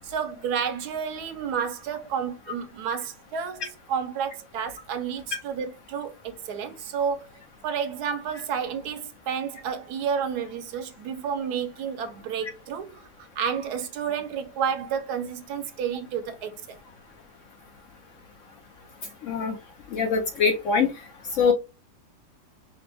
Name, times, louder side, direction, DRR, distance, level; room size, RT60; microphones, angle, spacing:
voice 1, 0.0-7.3 7.6-13.0 13.4-16.8, right 7 dB, 75° right, 1.1 m, -30 dB
voice 2, 19.2-19.6 19.9-20.9 21.3-21.5, left 5 dB, 65° left, 0.8 m, -23 dB
5.1 x 2.0 x 3.4 m
omnidirectional pair, 1.8 m